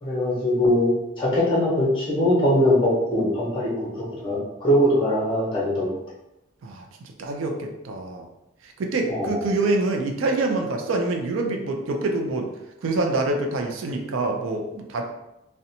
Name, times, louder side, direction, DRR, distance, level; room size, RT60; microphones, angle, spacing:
voice 1, 0.0-3.9 4.2-5.9 9.1-9.4, left 1 dB, 25° left, -6 dB, 0.8 m, -21 dB
voice 2, 6.6-8.2 8.6-12.5 12.8-15.0, right 2 dB, 80° right, 3 dB, 0.4 m, -26 dB
2.6 x 2.1 x 2.7 m, 0.91 s
head